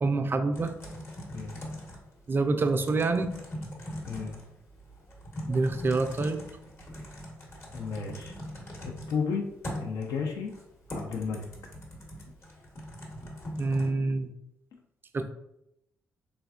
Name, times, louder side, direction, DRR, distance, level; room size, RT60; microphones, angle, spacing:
voice 1, 0.0-0.7 2.3-3.3 5.5-6.5 13.6-14.3 15.1-15.3, right 3 dB, 35° right, 8 dB, 0.4 m, -26 dB
Typing, 0.5-13.9, equal, 40° left, 1.0 m, -41 dB
voice 2, 4.1-4.4 7.7-8.4 8.8-9.5 9.8-10.5 10.9-11.5, left 5 dB, 65° left, 1 dB, 0.4 m, -33 dB
3.3 x 2.2 x 2.4 m, 0.82 s
hypercardioid pair, 45°, 7 cm